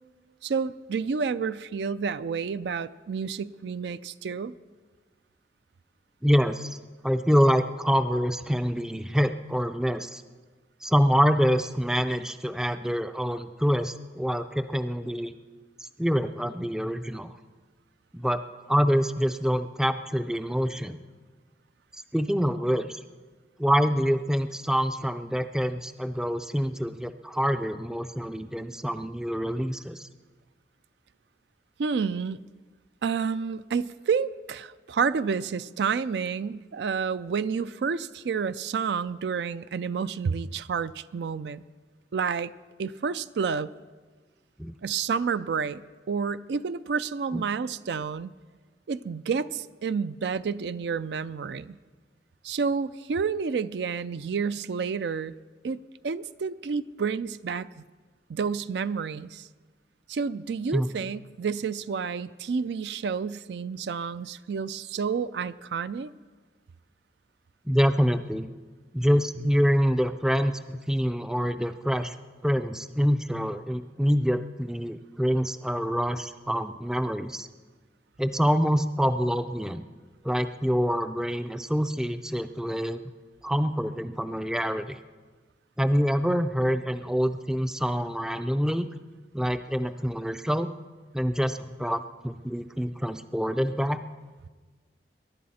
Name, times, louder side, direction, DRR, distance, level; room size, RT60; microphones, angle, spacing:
voice 1, 0.4-4.5 31.8-32.4 33.0-41.6 42.1-42.5 42.8-43.7 44.8-48.3 48.9-51.8 52.4-55.3 55.6-55.8 56.0-57.8 58.3-59.5 60.1-66.1, right 5 dB, 75° right, 15 dB, 0.4 m, -30 dB
voice 2, 6.2-6.8 7.0-10.2 10.8-15.3 15.8-17.3 18.1-18.4 18.7-21.0 22.1-23.0 23.6-30.0 44.6-44.7 47.3-47.4 60.7-60.9 67.7-68.5 68.9-72.2 72.4-77.5 78.2-79.8 80.2-83.0 83.4-85.0 85.8-88.9 89.3-90.7 91.1-94.0, equal, 5° right, 10 dB, 0.4 m, -26 dB
22.5 x 11.0 x 4.2 m, 1.4 s
head